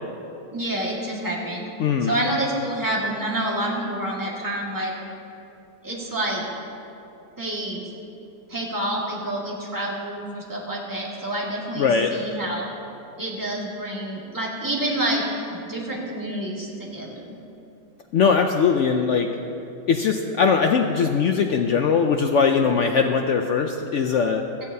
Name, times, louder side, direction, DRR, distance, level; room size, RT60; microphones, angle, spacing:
voice 1, 0.5-1.7 2.0-4.9 5.8-6.4 7.4-7.9 8.5-12.7 13.2-15.2 15.5-17.4, right 1 dB, 10° right, -4 dB, 1.8 m, -28 dB
voice 2, 1.8-2.1 11.8-12.1 18.1-19.3 19.9-24.4, left 6 dB, 75° left, 4 dB, 0.6 m, -20 dB
16.5 x 13.0 x 2.7 m, 2.8 s
omnidirectional pair, 1.8 m